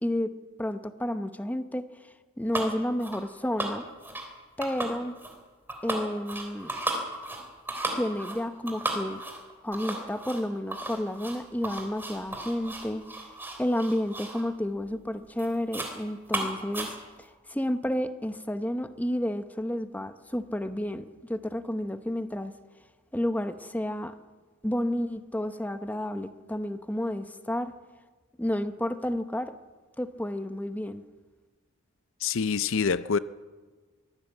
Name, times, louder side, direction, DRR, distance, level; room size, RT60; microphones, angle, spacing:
voice 1, 0.0-1.9 2.4-3.8 4.6-5.1 5.8-6.7 8.0-9.2 9.6-13.0 13.6-16.9 17.2-22.5 23.1-24.1 24.6-27.7 28.4-29.5 30.0-31.0, left 1 dB, 5° left, 0.8 m, -31 dB
sound 1, 2.5-2.7 3.0-3.3 3.6-4.3 4.6-5.4 5.7-14.5 14.8-15.1 15.4-16.0 16.3-17.3, right 1 dB, 10° right, 3.5 m, -35 dB
voice 2, 32.2-33.2, left 5 dB, 60° left, 0.5 m, -26 dB
23.0 x 15.5 x 8.1 m
head